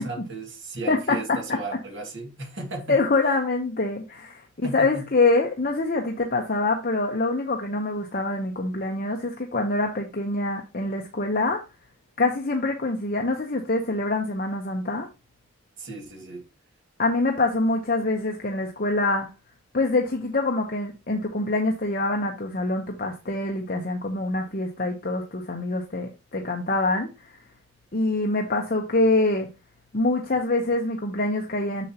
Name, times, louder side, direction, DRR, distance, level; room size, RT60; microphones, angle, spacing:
voice 1, 0.0-3.0 4.6-5.0 15.8-16.4, right 2 dB, 55° right, 2.1 m, -35 dB
voice 2, 0.9-1.4 2.9-11.6 12.2-15.1 17.0-19.3 19.7-27.3 27.9-29.5 29.9-31.9, left 2 dB, 45° left, 0.9 m, -25 dB
7.1 x 6.8 x 2.9 m
head